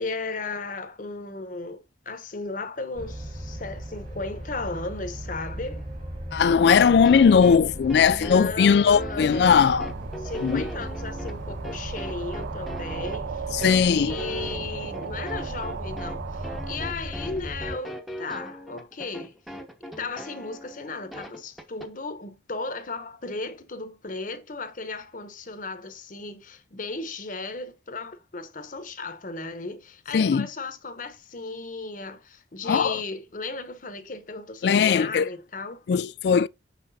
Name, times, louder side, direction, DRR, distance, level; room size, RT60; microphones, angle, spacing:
voice 1, 0.0-5.9 8.0-9.6 10.2-13.5 13.8-19.4 20.0-35.8, left 3 dB, 45° left, 1.0 m, -35 dB
sound 1, 2.9-17.8, equal, 45° right, 2.2 m, -37 dB
voice 2, 6.3-9.9 10.4-10.7 13.5-14.2 30.1-30.5 32.7-33.0 34.6-35.3 35.9-36.5, left 6 dB, 65° left, 0.3 m, -19 dB
sound 2, 7.0-21.9, equal, ahead, 0.8 m, -40 dB
sound 3, 9.5-16.8, right 7 dB, 85° right, 0.4 m, -37 dB
6.3 x 5.9 x 2.7 m
head